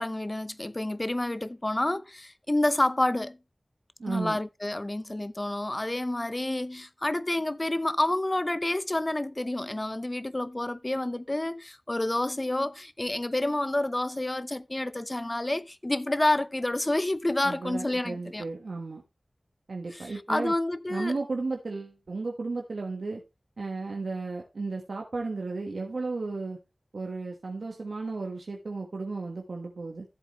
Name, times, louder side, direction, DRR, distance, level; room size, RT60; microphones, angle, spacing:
voice 1, 0.0-3.4 4.1-18.4 19.9-21.2, left 1 dB, 30° left, 0.7 m, -29 dB
voice 2, 4.0-4.4 17.4-19.0 19.7-20.5 20.9-23.2 23.6-26.6 26.9-30.0, right 3 dB, 90° right, 1.4 m, -34 dB
14.0 x 8.0 x 3.1 m
wide cardioid pair, 55°, 0 cm